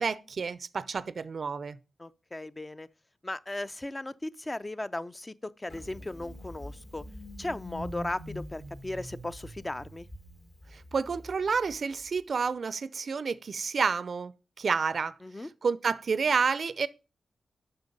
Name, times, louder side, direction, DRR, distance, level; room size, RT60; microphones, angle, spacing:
voice 1, 0.0-1.8 10.7-14.3 14.6-15.1 15.6-16.9, right 5 dB, 65° right, 0.4 m, -29 dB
voice 2, 2.0-2.9 3.2-7.0 7.4-10.1 15.2-15.5, left 2 dB, 25° left, 0.5 m, -37 dB
Engine starting, 5.7-12.2, equal, 60° left, 3.2 m, -44 dB
6.9 x 5.6 x 5.1 m
supercardioid pair, 40°, 0 cm